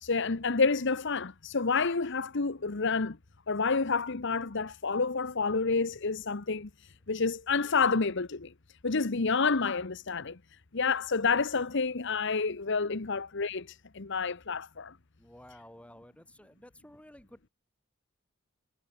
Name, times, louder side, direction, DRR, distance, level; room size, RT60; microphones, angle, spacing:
voice 1, 0.0-3.2 3.5-8.5 8.8-10.4 10.7-14.9, left 4 dB, 60° left, 1.1 m, -29 dB
voice 2, 15.2-17.5, left 1 dB, 5° left, 7.3 m, -53 dB
head